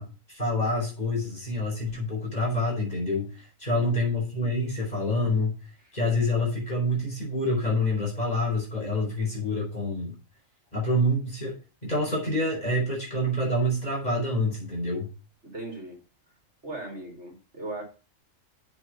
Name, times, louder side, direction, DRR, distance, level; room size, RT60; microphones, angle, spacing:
voice 1, 0.0-5.6 5.9-10.1 10.7-11.5 11.8-15.1, left 1 dB, 30° left, -2 dB, 5.2 m, -27 dB
voice 2, 3.7-4.1 5.8-5.9 15.4-16.0 16.6-17.8, right 2 dB, 60° right, 0 dB, 3.9 m, -39 dB
7.6 x 7.3 x 6.2 m, 0.33 s
omnidirectional pair, 1.3 m